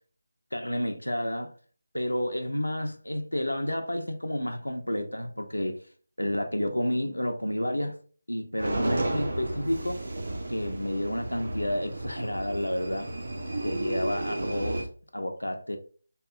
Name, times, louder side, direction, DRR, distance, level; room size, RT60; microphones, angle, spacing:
voice 1, 0.5-1.5 1.9-5.8 6.2-7.9 8.3-10.0 10.5-13.1 13.6-14.9 15.1-15.8, left 1 dB, 80° left, 0.4 m, -30 dB
sound 1, 8.6-14.8, right 1 dB, 55° right, 0.5 m, -33 dB
2.8 x 2.3 x 2.3 m
figure-of-eight pair, 160°, 0 cm